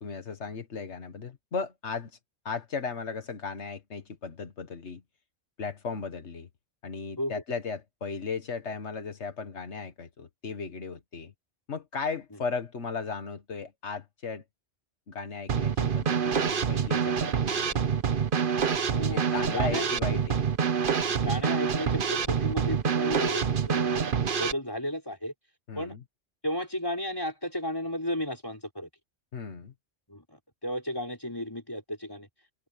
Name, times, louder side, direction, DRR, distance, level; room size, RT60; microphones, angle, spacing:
voice 1, 0.0-2.1 2.5-5.0 5.6-6.5 6.8-11.3 11.7-14.4 15.1-17.7 19.1-20.4 25.7-26.0 29.3-29.7, left 5 dB, 85° left, 1.8 m, -36 dB
Drum kit / Snare drum, 15.5-24.5, right 6 dB, 55° right, 1.1 m, -26 dB
voice 2, 18.9-19.9 21.1-24.0 24.3-25.3 25.7-26.0 26.4-28.9 30.1-32.3, equal, 20° left, 5.7 m, -34 dB
open air
omnidirectional pair, 1.1 m